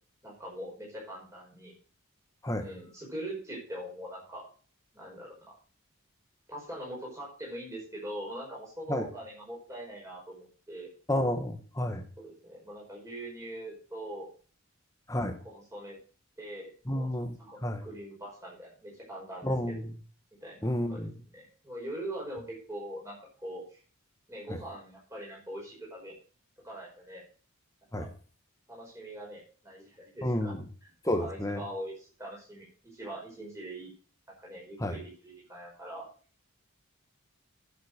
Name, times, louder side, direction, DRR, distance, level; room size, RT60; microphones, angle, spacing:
voice 1, 0.2-1.7 2.5-4.4 4.9-5.6 6.5-10.9 12.2-14.3 15.4-16.0 16.4-17.1 17.4-17.6 17.8-19.5 20.4-21.1 21.3-23.8 24.3-26.1 26.6-27.2 27.9-28.1 28.7-30.5 31.0-33.9 34.4-36.1, right 1 dB, 15° right, -4 dB, 5.4 m, -42 dB
voice 2, 11.1-12.0 15.1-15.4 16.9-17.4 17.6-17.9 19.4-19.9 20.6-21.1 24.5-24.6 27.9-28.1 30.2-30.6 31.1-31.6 34.8-35.0, left 1 dB, 15° left, 6 dB, 1.3 m, -30 dB
10.5 x 7.6 x 6.3 m, 0.40 s
head